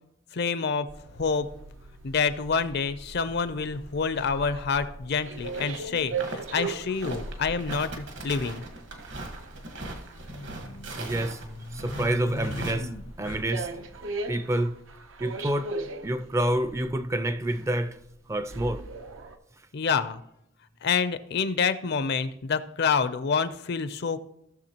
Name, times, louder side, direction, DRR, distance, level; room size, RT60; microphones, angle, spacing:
voice 1, 0.3-1.5 2.0-8.6 19.7-20.2 20.8-24.2, left 5 dB, 60° left, 0.6 m, -27 dB
sound 1, 0.9-19.4, right 3 dB, 90° right, 0.8 m, -40 dB
sound 2, 1.2-1.3 2.8-2.9 4.3-4.4 4.6-4.7 6.5-6.7 6.9-7.0 7.7-8.2 9.6-13.8, left 1 dB, 90° left, 0.9 m, -40 dB
sound 3, 5.4-5.8 6.0-12.7, right 2 dB, 65° right, 1.4 m, -40 dB
voice 2, 11.0-11.4 11.7-13.9 14.3-14.7 15.2-15.7 16.0-18.0 18.3-18.8, right 1 dB, 15° right, 0.4 m, -28 dB
17.5 x 6.6 x 2.9 m
head